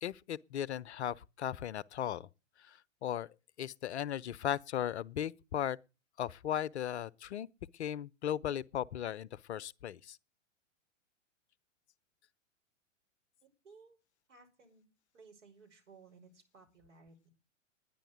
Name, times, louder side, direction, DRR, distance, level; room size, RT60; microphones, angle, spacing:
voice 1, 0.0-2.3 2.7-3.3 3.6-5.8 6.2-7.5 7.8-10.2, left 10 dB, 60° left, 0.7 m, -37 dB
voice 2, 13.4-14.0 14.3-14.9 15.1-17.3, right 4 dB, 65° right, 5.5 m, -59 dB
10.5 x 10.0 x 7.9 m
figure-of-eight pair, 100°, 38 cm